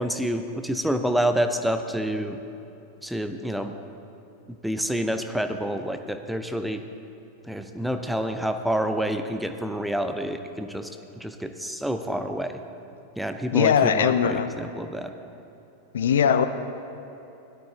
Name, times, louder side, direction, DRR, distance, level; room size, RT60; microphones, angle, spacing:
voice 1, 0.0-2.4 3.0-3.7 4.5-6.8 7.4-10.9 11.2-12.6 13.2-15.1, equal, ahead, 7 dB, 0.7 m, -28 dB
voice 2, 13.5-14.5 15.9-16.4, left 8 dB, 65° left, 11 dB, 0.5 m, -20 dB
17.5 x 12.0 x 3.7 m, 2.9 s
figure-of-eight pair, 90°, 0 cm